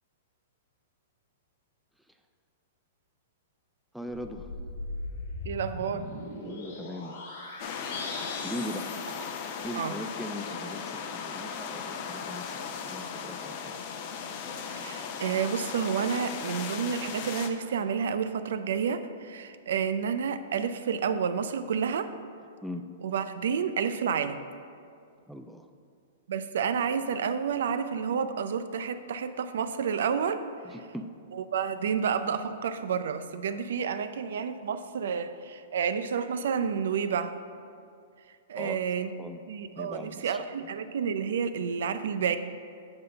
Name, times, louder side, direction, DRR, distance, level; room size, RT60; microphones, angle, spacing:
voice 1, 3.9-4.5 6.4-7.2 8.4-9.0 9.6-13.8 22.6-22.9 25.3-25.7 30.6-31.1 38.6-38.8 39.2-39.4 39.8-40.7, equal, ahead, 5 dB, 0.3 m, -40 dB
sound 1, 4.1-9.9, left 2 dB, 65° left, 1.5 m, -40 dB
voice 2, 5.4-6.1 9.8-9.9 14.8-22.1 23.0-24.4 26.3-30.4 31.3-37.4 38.5-39.1 39.5-42.4, right 7 dB, 75° right, 11 dB, 0.4 m, -30 dB
sound 2, 7.6-17.5, left 6 dB, 45° left, 0.6 m, -37 dB
7.9 x 3.8 x 5.3 m, 2.3 s
hypercardioid pair, 140°, 0 cm